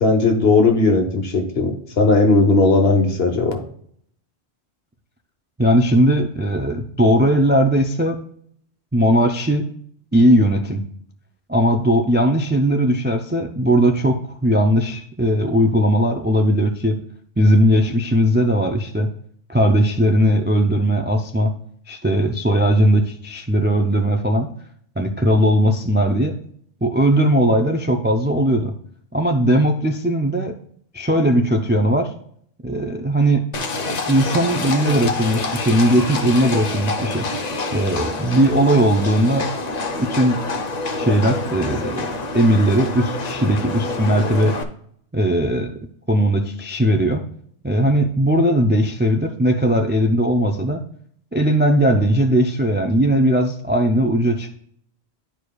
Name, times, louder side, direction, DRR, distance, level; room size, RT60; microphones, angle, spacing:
voice 1, 0.0-3.6, left 3 dB, 65° left, 3 dB, 1.4 m, -17 dB
voice 2, 5.6-8.2 8.9-9.6 10.1-10.8 11.5-17.0 17.4-19.1 19.5-21.5 21.9-24.5 25.0-26.4 26.8-28.7 29.1-30.5 30.9-32.1 32.6-33.4 34.1-37.3 37.7-39.5 40.0-40.4 41.0-44.6 45.1-45.7 46.1-47.2 47.6-50.8 51.3-54.5, equal, 15° right, 4 dB, 0.3 m, -18 dB
Livestock farm animals working animals, 33.5-44.6, left 3 dB, 45° left, 0.8 m, -27 dB
11.5 x 4.7 x 2.3 m, 0.65 s
omnidirectional pair, 1.1 m